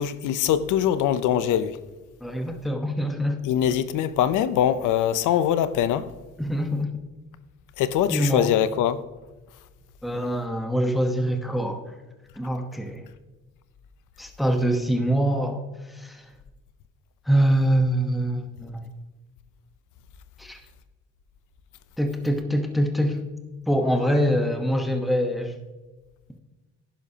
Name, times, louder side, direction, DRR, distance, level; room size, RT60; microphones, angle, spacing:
voice 1, 0.0-1.8 3.4-6.1 7.8-9.0, left 10 dB, 90° left, 0.7 m, -23 dB
voice 2, 2.2-3.4 6.4-7.0 8.1-8.5 10.0-11.9 12.4-13.0 14.2-15.6 15.9-16.2 17.3-18.8 20.4-20.6 22.0-23.2 23.7-25.5, equal, ahead, 1.0 m, -24 dB
11.0 x 10.0 x 2.8 m
cardioid pair, 90°, 30 cm